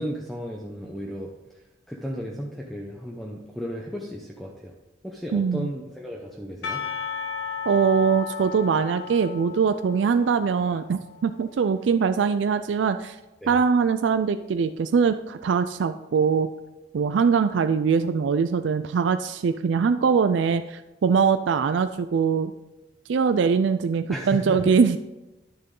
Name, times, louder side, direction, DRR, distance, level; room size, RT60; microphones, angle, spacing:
voice 1, 0.0-1.6 1.9-4.7 5.0-6.8 13.4-13.6 24.1-24.7, equal, ahead, -1 dB, 0.7 m, -34 dB
voice 2, 5.3-5.7 7.7-13.2 13.5-16.5 16.9-22.5 23.1-25.0, right 6 dB, 80° right, 10 dB, 0.4 m, -22 dB
Percussion / Church bell, 6.6-11.7, left 6 dB, 75° left, 1.2 m, -35 dB
10.5 x 6.6 x 3.8 m, 1.0 s
head